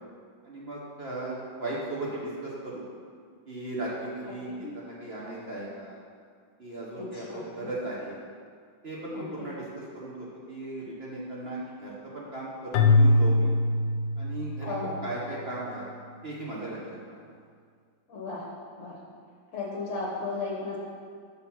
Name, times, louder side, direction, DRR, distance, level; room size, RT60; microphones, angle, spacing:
voice 1, 0.4-2.8 3.5-6.0 6.6-8.2 8.8-13.5 14.2-15.8 16.2-16.8 17.1-17.3 19.1-19.2, right 2 dB, 50° right, -5 dB, 0.7 m, -37 dB
voice 2, 4.2-4.7 7.0-7.7 9.1-9.5 14.6-15.0 18.1-18.4 18.8-19.0 19.5-20.8, left 3 dB, 50° left, -4 dB, 1.1 m, -35 dB
Keyboard (musical), 12.7-15.0, left 2 dB, 80° left, 1.3 m, -22 dB
6.4 x 4.1 x 5.6 m, 2.1 s
omnidirectional pair, 2.1 m